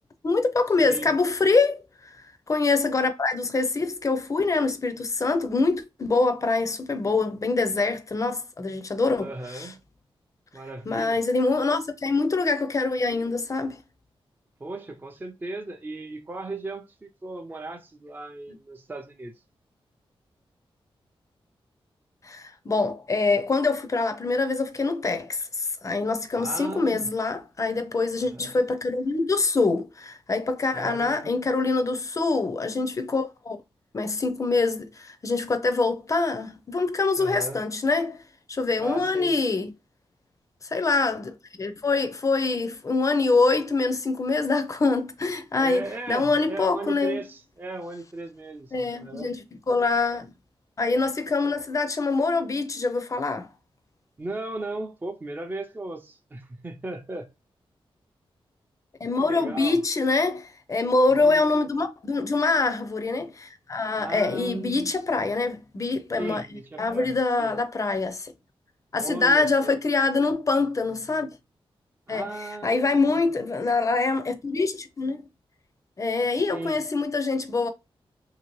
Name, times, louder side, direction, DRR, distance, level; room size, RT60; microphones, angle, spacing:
voice 1, 0.2-2.2 2.5-9.7 10.9-13.8 22.2-33.6 33.9-38.2 38.5-39.7 40.6-47.2 48.7-50.3 50.8-53.5 59.0-66.4 66.8-68.3 68.9-71.3 72.1-75.2 76.0-77.7, left 3 dB, 35° left, 0.5 m, -25 dB
voice 2, 0.8-1.1 9.2-9.8 10.5-11.2 14.6-19.4 26.3-27.1 28.2-28.5 30.7-31.3 37.2-37.6 38.8-39.3 45.5-49.3 54.2-57.3 59.2-59.8 61.1-61.7 64.0-64.9 66.2-67.6 69.0-69.8 72.1-73.5 76.5-76.8, right 2 dB, 20° right, 0.5 m, -37 dB
2.8 x 2.8 x 3.0 m
wide cardioid pair, 105°, 10 cm